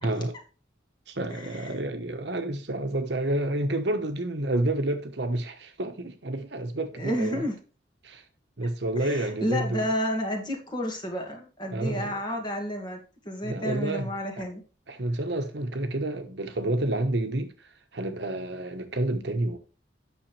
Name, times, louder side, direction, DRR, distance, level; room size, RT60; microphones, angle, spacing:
voice 1, 0.0-0.3 1.1-7.5 8.0-8.2 8.6-9.9 11.7-12.2 13.4-14.1 14.4-14.5 14.9-19.6, right 1 dB, 65° right, 1.1 m, -29 dB
voice 2, 1.3-1.8 7.0-7.6 9.0-13.0 13.2-14.6, equal, 25° left, 1.9 m, -31 dB
9.0 x 6.2 x 3.2 m
head